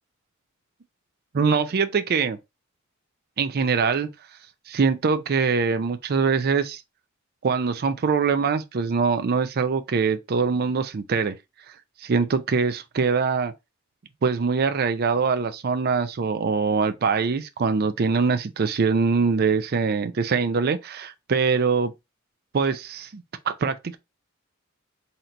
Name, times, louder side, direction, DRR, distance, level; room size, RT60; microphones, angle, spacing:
voice 1, 1.3-2.4 3.4-4.1 4.7-6.8 7.4-11.4 12.0-13.5 14.2-21.9 22.5-24.0, right 5 dB, 45° right, 0.4 m, -23 dB
3.8 x 2.8 x 4.4 m
head